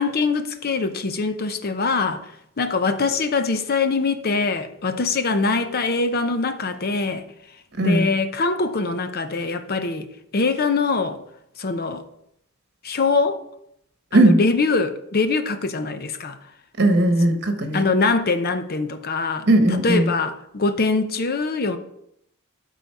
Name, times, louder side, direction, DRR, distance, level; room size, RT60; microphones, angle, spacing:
voice 1, 0.0-2.2 2.6-7.2 7.8-10.1 10.3-11.2 11.6-12.0 12.8-13.5 14.1-16.4 17.7-19.5 19.8-21.8, left 4 dB, 45° left, 0.7 m, -23 dB
voice 2, 16.8-17.9 19.5-20.1, right 1 dB, 55° right, 1.4 m, -17 dB
12.5 x 4.1 x 4.7 m
head